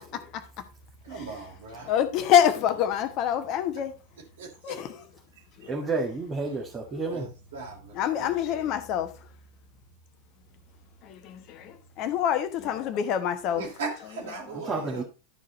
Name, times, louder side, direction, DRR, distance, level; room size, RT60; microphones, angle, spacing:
voice 1, 1.1-1.9 4.4-4.8 6.9-8.6 13.6-15.0, right 4 dB, 60° right, 3.2 m, -39 dB
voice 2, 1.9-3.9 4.6-5.0 7.9-9.1 11.2-11.7 12.0-13.6 14.5-14.6, left 9 dB, 40° left, 1.1 m, -25 dB
voice 3, 5.7-7.3 14.5-15.0, right 3 dB, 20° right, 1.9 m, -30 dB
12.0 x 4.9 x 4.3 m
figure-of-eight pair, 90°, 0 cm